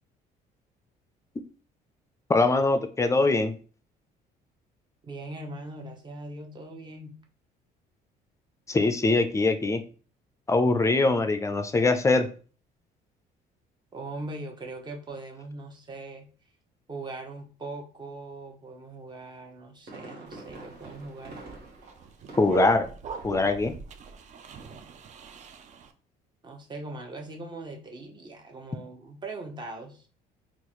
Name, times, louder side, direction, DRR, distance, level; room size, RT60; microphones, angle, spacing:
voice 1, 2.3-3.5 8.7-9.8 10.5-12.3 22.4-22.9 23.2-23.7, left 3 dB, 15° left, 8 dB, 0.4 m, -22 dB
voice 2, 5.0-7.1 11.0-11.3 13.9-16.3 16.9-21.4 24.6-24.8 26.4-30.1, right 2 dB, 25° right, 2 dB, 0.9 m, -40 dB
Fireworks, 19.6-22.8 23.1-23.5 23.8-23.9, right 2 dB, 65° right, 1.3 m, -46 dB
sound 1, 20.3-25.9, right 8 dB, 45° right, 0.5 m, -39 dB
3.8 x 2.5 x 3.0 m, 0.39 s
cardioid pair, 110°, 17 cm